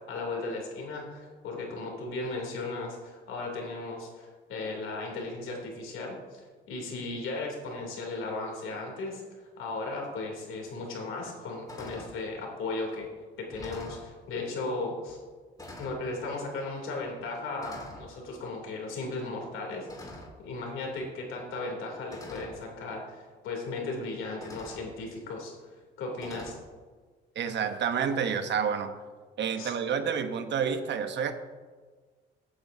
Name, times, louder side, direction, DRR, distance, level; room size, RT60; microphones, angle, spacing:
voice 1, 0.1-13.1 13.4-15.2 15.8-25.5 26.0-26.6 29.6-29.7, left 3 dB, 85° left, 0 dB, 2.9 m, -36 dB
sound 1, 10.6-10.7 11.2-11.4 11.7-12.2 13.0-13.1 13.4-14.1 15.1-15.3 15.6-16.1 17.0-17.2 17.6-18.1 19.9-20.5 21.6-21.7 22.1-22.6 23.8-23.9 24.4-24.9 26.2-26.5, left 1 dB, 20° left, 2.1 m, -45 dB
voice 2, 27.3-28.9 29.4-31.3, right 7 dB, 65° right, 8 dB, 1.0 m, -29 dB
15.5 x 8.7 x 2.7 m, 1.4 s
cardioid pair, 90°, 20 cm